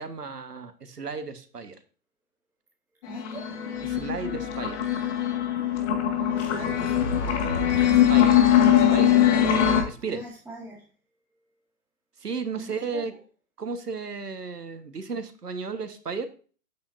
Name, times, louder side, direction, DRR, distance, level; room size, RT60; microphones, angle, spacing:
voice 1, 0.0-1.8 3.8-4.8 7.9-8.4 8.7-9.2 9.8-10.2 12.2-13.1 13.6-16.3, right 5 dB, 85° right, 9 dB, 1.5 m, -34 dB
sound 1, 3.0-9.8, left 10 dB, 50° left, 2.0 m, -22 dB
voice 2, 3.0-3.5 6.3-7.5 10.1-10.9 12.5-13.1, right 2 dB, 5° right, -5 dB, 2.0 m, -42 dB
10.0 x 8.6 x 2.6 m, 0.39 s
figure-of-eight pair, 120°, 46 cm